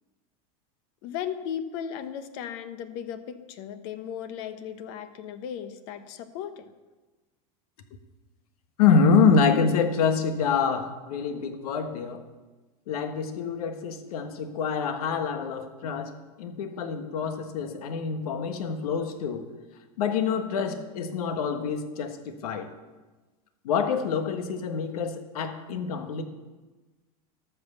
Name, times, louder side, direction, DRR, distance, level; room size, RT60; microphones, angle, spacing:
voice 1, 1.0-6.7, left 9 dB, 60° left, 10 dB, 1.0 m, -36 dB
voice 2, 8.8-12.2 12.9-16.1 16.4-19.5 20.0-22.7 23.6-26.2, left 5 dB, 85° left, 7 dB, 1.4 m, -26 dB
12.5 x 6.2 x 6.8 m, 1.2 s
supercardioid pair, 135°, 19 cm